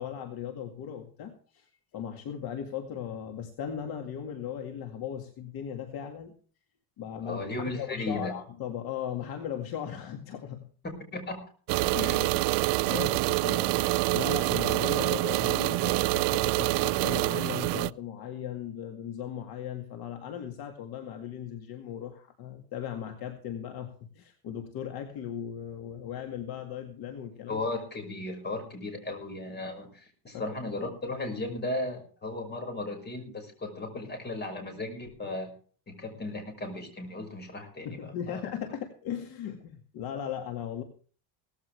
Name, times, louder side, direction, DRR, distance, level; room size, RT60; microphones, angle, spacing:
voice 1, 0.0-6.3 7.0-7.4 7.7-10.7 11.7-27.6 30.3-30.5 37.8-40.8, left 9 dB, 50° left, 5 dB, 2.1 m, -38 dB
voice 2, 7.2-8.3 11.1-11.4 12.0-12.2 27.5-35.5 35.9-38.4, left 2 dB, 20° left, 5 dB, 5.6 m, -36 dB
sound 1, 11.7-17.9, right 21 dB, 60° right, 0.5 m, -26 dB
17.5 x 15.0 x 3.4 m, 0.42 s
cardioid pair, 165°, 48 cm